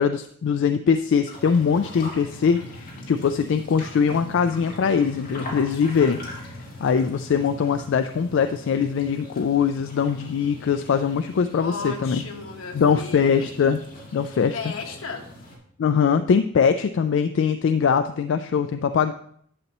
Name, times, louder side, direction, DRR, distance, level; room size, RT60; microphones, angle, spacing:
voice 1, 0.0-12.2 12.7-13.8 14.1-14.6 15.8-19.1, left 6 dB, 65° left, 9 dB, 0.3 m, -22 dB
sound 1, 1.2-15.6, left 1 dB, 45° left, 2.5 m, -41 dB
voice 2, 11.6-13.4 14.5-15.3, left 4 dB, 85° left, 3 dB, 1.3 m, -35 dB
11.0 x 7.1 x 3.0 m, 0.64 s
head